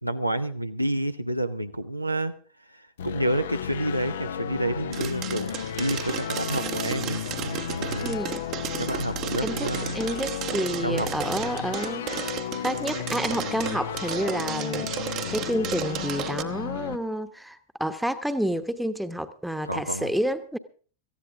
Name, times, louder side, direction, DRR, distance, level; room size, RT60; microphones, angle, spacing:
voice 1, 0.0-2.3 2.7-8.2 8.8-10.0 10.8-11.1 19.6-20.1, right 1 dB, 90° right, 0.8 m, -29 dB
sound 1, 3.0-17.0, left 8 dB, 60° left, 0.7 m, -34 dB
sound 2, 4.9-16.4, right 11 dB, 35° right, 0.9 m, -34 dB
voice 2, 8.0-8.4 9.4-12.1 12.6-20.6, equal, ahead, 1.1 m, -29 dB
18.5 x 14.5 x 3.7 m
figure-of-eight pair, 90°, 0 cm